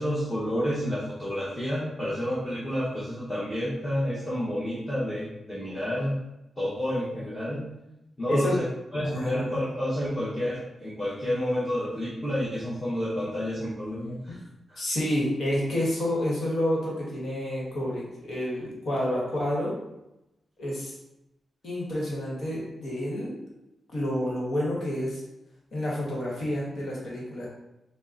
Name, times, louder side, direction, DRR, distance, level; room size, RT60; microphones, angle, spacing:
voice 1, 0.0-6.2 6.6-7.6 8.2-8.6 8.9-14.4 14.7-14.8, equal, 10° left, -10 dB, 0.9 m, -29 dB
voice 2, 8.3-8.6 9.0-9.6 14.8-19.7 20.6-20.9 21.6-23.4 23.9-25.2 25.7-27.5, left 1 dB, 65° left, -4 dB, 1.2 m, -29 dB
3.7 x 2.1 x 3.8 m, 0.92 s
wide cardioid pair, 110°, 0 cm